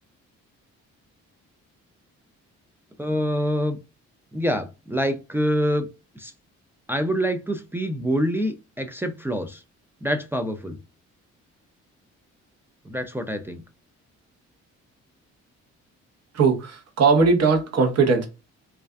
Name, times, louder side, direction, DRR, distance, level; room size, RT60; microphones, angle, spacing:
voice 1, 3.0-3.8 4.3-5.9 6.2-6.3 6.9-9.6 10.0-10.8 12.9-13.6, equal, 10° right, 0.3 m, -26 dB
voice 2, 16.4-16.7 17.0-18.3, right 4 dB, 55° right, 0.9 m, -18 dB
2.4 x 2.2 x 2.3 m
cardioid pair, 90°, 30 cm